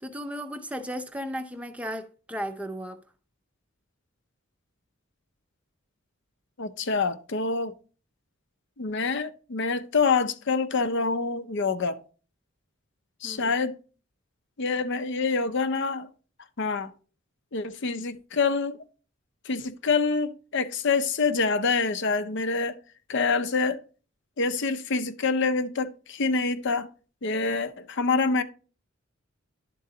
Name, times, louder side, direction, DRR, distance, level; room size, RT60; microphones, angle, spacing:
voice 1, 0.0-3.0 13.2-13.5, equal, 5° right, 0.5 m, -35 dB
voice 2, 6.6-7.7 8.8-12.0 13.2-13.8 14.6-16.1 16.6-16.9 17.5-18.8 19.4-22.7 23.1-23.8 24.4-26.9 27.2-28.4, left 4 dB, 60° left, 0.6 m, -26 dB
11.5 x 3.8 x 3.8 m
head